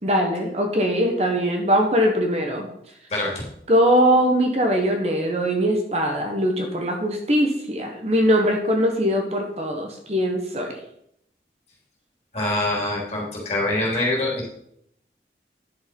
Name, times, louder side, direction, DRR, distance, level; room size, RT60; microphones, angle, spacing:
voice 1, 0.0-2.7 3.7-10.8, equal, 35° right, 3 dB, 1.3 m, -21 dB
voice 2, 12.3-14.5, left 1 dB, 35° left, -4 dB, 3.4 m, -24 dB
10.5 x 6.5 x 5.4 m, 0.74 s
head